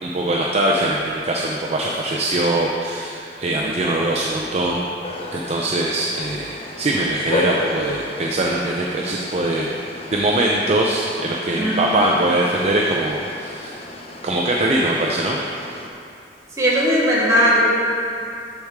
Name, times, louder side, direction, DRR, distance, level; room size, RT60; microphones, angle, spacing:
voice 1, 0.0-4.8 5.3-9.7 10.1-13.8 14.2-15.4, right 1 dB, 35° right, -2 dB, 0.5 m, -22 dB
sound 1, 5.0-15.9, left 2 dB, 35° left, 0.7 m, -33 dB
voice 2, 11.6-12.0 16.5-17.7, equal, 20° right, -7 dB, 1.7 m, -18 dB
13.0 x 4.7 x 3.6 m, 2.5 s
head